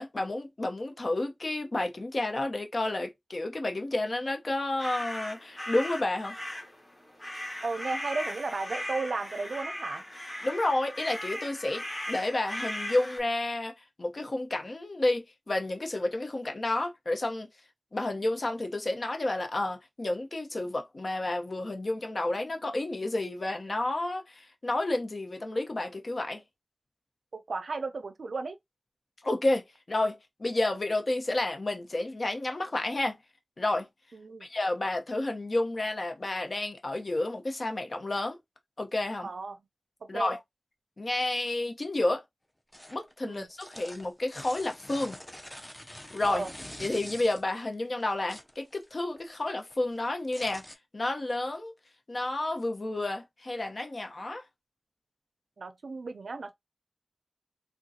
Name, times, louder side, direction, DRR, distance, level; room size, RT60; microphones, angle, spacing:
voice 1, 0.0-6.3 10.4-13.7 14.0-17.5 17.9-26.4 29.2-33.2 33.6-33.9 34.4-38.4 38.8-39.3 40.1-40.4 41.0-42.2 42.9-45.2 46.1-46.5 46.8-50.6 50.9-51.7 52.1-54.4, left 2 dB, 55° left, 0.9 m, -30 dB
sound 1, 4.8-13.2, left 1 dB, 40° left, 1.6 m, -38 dB
voice 2, 7.6-10.0 27.3-28.6 34.1-34.5 39.2-39.6 40.1-40.3 43.2-43.5 46.3-46.5 55.6-56.5, right 3 dB, 85° right, 0.4 m, -34 dB
sound 2, 42.7-43.1 43.4-47.6 48.0-49.2 49.5-50.8, left 1 dB, 15° left, 0.6 m, -45 dB
3.6 x 2.2 x 2.7 m
cardioid pair, 45°, 0 cm